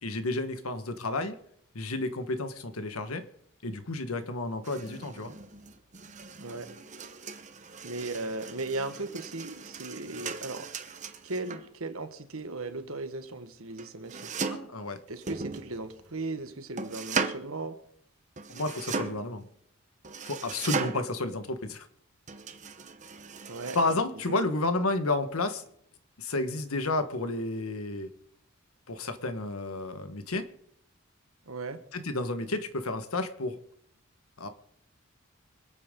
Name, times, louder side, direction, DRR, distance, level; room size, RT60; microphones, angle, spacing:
voice 1, 0.0-1.4 1.7-3.2 3.6-5.3 14.5-15.0 18.5-19.4 20.3-21.9 23.7-25.6 26.2-28.1 28.9-30.5 31.9-33.6 34.4-34.5, left 2 dB, 85° left, 9 dB, 1.4 m, -31 dB
sound 1, 4.6-11.7 13.8-14.8 15.2-16.2 16.8-17.5 18.4-19.3 20.0-21.2 22.3-23.9, right 5 dB, 35° right, 0.9 m, -37 dB
voice 2, 7.8-10.7 11.2-14.3 15.1-17.8 23.5-23.8 24.3-24.4 31.5-31.8, right 2 dB, 80° right, 8 dB, 1.5 m, -37 dB
26.0 x 8.7 x 3.8 m, 0.69 s
head